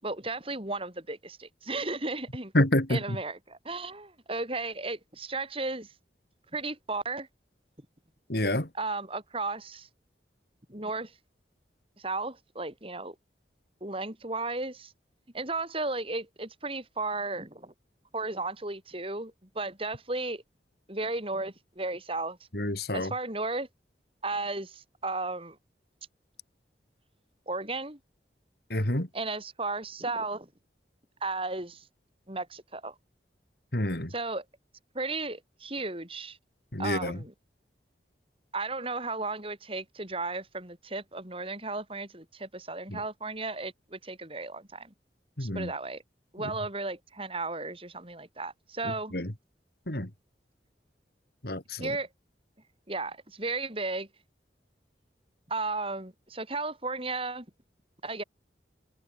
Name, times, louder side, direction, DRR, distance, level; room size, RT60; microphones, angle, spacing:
voice 1, 0.0-2.5 2.9-5.9 6.5-7.3 8.8-9.9 10.7-11.1 12.0-13.2 13.8-14.9 15.3-17.7 18.1-20.4 20.9-22.4 22.9-23.7 24.2-25.6 27.5-28.0 29.1-30.5 31.2-31.8 32.3-32.9 34.1-34.4 34.9-36.4 36.8-37.3 38.5-44.9 45.4-46.0 46.3-49.1 51.8-52.1 52.9-54.1 55.5-57.5 58.0-58.2, right 3 dB, 30° right, 7.3 m, -34 dB
voice 2, 2.5-3.2 8.3-8.7 22.5-23.1 28.7-29.1 33.7-34.1 36.7-37.2 42.9-43.0 45.4-45.7 48.8-49.3 49.9-50.1 51.4-52.0, left 1 dB, 60° left, 3.5 m, -28 dB
head